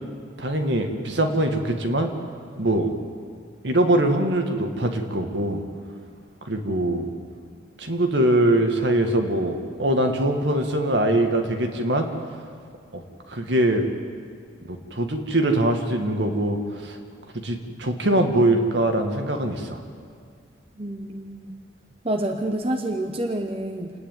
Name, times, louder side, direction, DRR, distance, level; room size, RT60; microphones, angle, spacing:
voice 1, 0.4-2.1 2.6-2.9 3.6-5.6 6.4-7.1 7.8-12.1 12.9-13.0 13.3-13.8 14.7-17.0 17.3-19.8, right 1 dB, 65° right, 4 dB, 2.0 m, -22 dB
voice 2, 20.8-21.6 22.0-23.9, right 1 dB, 30° right, 4 dB, 1.0 m, -28 dB
28.5 x 10.0 x 9.4 m, 2.1 s
head